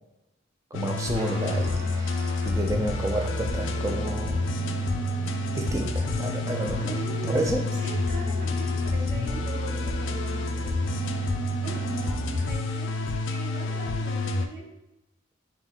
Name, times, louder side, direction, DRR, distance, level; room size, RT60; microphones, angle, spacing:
sound 1, 0.7-14.5, left 2 dB, 70° left, 0.3 m, -28 dB
voice 1, 0.7-4.4 5.5-7.0 7.3-7.7, right 1 dB, 15° right, 2 dB, 0.3 m, -30 dB
Guitar, 1.1-9.9, right 5 dB, 85° right, 0.5 m, -46 dB
Engine / Mechanisms, 3.5-12.4, left 1 dB, 20° left, 0.9 m, -39 dB
voice 2, 6.7-7.4 7.8-14.7, right 2 dB, 60° right, -4 dB, 0.9 m, -41 dB
3.6 x 2.6 x 2.3 m, 0.94 s
head